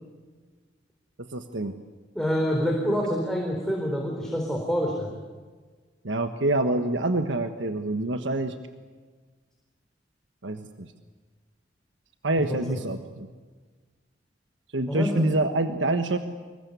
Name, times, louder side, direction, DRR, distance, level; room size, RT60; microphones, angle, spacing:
voice 1, 1.2-1.7 6.0-8.5 10.4-10.9 12.2-13.3 14.7-16.2, right 2 dB, 85° right, 7 dB, 1.4 m, -26 dB
voice 2, 2.1-5.1 12.5-12.6 14.9-15.2, equal, 5° left, 0 dB, 4.0 m, -26 dB
26.5 x 22.5 x 8.3 m, 1.4 s
head